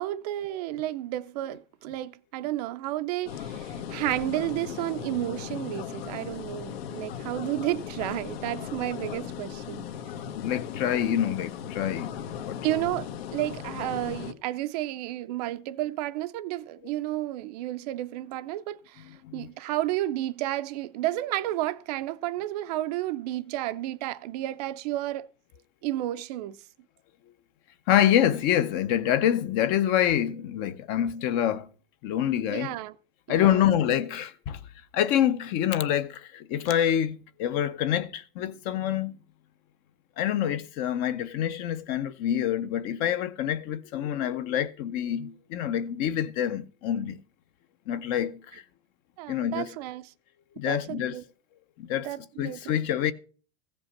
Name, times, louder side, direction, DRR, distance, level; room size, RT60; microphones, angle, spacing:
voice 1, 0.0-9.9 12.6-25.3 25.8-26.6 32.5-32.9 33.3-33.7 49.2-50.1 50.6-51.2 52.0-52.7, right 15 dB, 40° right, 0.5 m, -32 dB
sound 1, 3.3-14.3, left 9 dB, 75° left, 1.3 m, -37 dB
voice 2, 10.4-12.6 19.2-19.5 27.9-31.7 32.0-32.8 33.3-34.6 34.9-39.2 40.2-47.2 47.9-48.6 49.3-49.7 50.6-51.2 51.8-52.1 52.4-53.1, left 10 dB, 30° left, 0.5 m, -26 dB
15.5 x 5.3 x 7.1 m
supercardioid pair, 175°, 30 cm